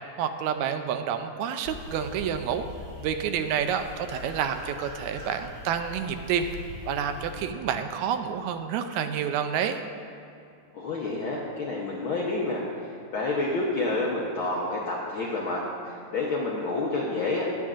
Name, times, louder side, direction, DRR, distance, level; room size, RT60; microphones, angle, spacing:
voice 1, 0.2-2.6 3.0-6.5 6.9-9.8, right 8 dB, 80° right, 8 dB, 1.8 m, -29 dB
sound 1, 1.6-7.5, left 2 dB, 15° right, 1.9 m, -42 dB
voice 2, 10.7-17.5, left 2 dB, 75° left, -4 dB, 1.2 m, -29 dB
19.0 x 7.1 x 2.5 m, 2.5 s
omnidirectional pair, 3.4 m